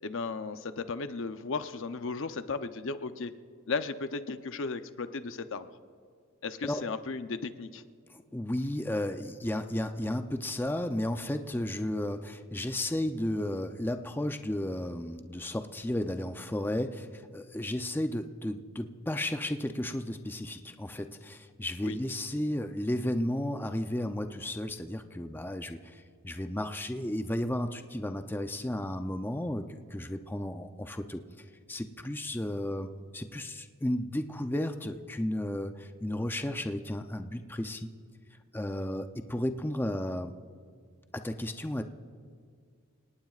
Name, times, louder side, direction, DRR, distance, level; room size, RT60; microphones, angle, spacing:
voice 1, 0.0-3.3 3.7-5.7 6.4-7.8 21.8-22.0, left 4 dB, 60° left, 10 dB, 0.7 m, -35 dB
voice 2, 8.1-31.2 31.7-37.9 38.5-40.3 41.1-41.8, left 1 dB, 10° left, 7 dB, 0.5 m, -33 dB
28.5 x 18.5 x 2.4 m, 2.1 s
head